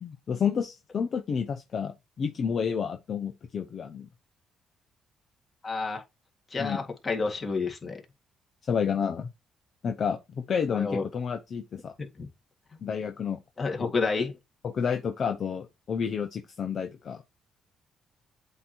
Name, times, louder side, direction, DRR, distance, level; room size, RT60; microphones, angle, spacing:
voice 1, 0.0-4.1 6.6-6.8 8.7-9.3 9.8-11.9 12.8-13.4 14.6-17.2, left 7 dB, 55° left, 0.8 m, -30 dB
voice 2, 5.6-6.0 6.5-8.0 10.7-11.0 12.0-12.3 13.6-14.4, left 4 dB, 30° left, 1.9 m, -29 dB
8.1 x 3.0 x 4.3 m
cardioid pair, 90°, 0 cm